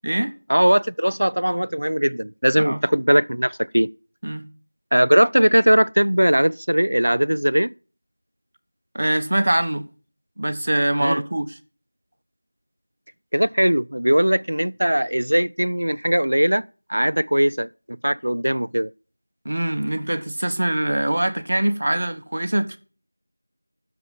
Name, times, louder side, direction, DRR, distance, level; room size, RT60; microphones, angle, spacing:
voice 1, 0.5-3.9 4.9-7.7 11.0-11.2 13.3-17.7 18.0-18.9, equal, 90° right, 0.5 m, -19 dB
voice 2, 8.9-9.9 10.4-11.6 19.4-22.8, right 1 dB, 40° right, 1.1 m, -23 dB
11.5 x 7.1 x 7.2 m
figure-of-eight pair, 180°, 0 cm